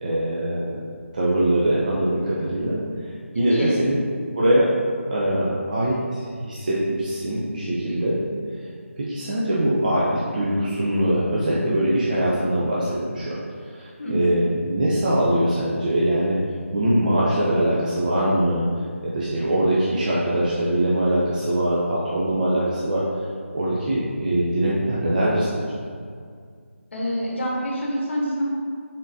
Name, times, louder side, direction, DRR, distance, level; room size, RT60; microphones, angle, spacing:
voice 1, 0.0-0.8 1.1-2.8 3.3-4.0 4.3-4.7 5.1-8.2 9.0-13.4 13.7-16.4 16.7-18.7 19.0-23.0 23.5-25.7, right 1 dB, 35° right, -7 dB, 0.5 m, -22 dB
voice 2, 14.0-14.3 20.3-20.6 26.9-28.4, equal, 60° left, -3 dB, 0.9 m, -27 dB
3.8 x 3.7 x 2.6 m, 2.1 s
figure-of-eight pair, 165°, 7 cm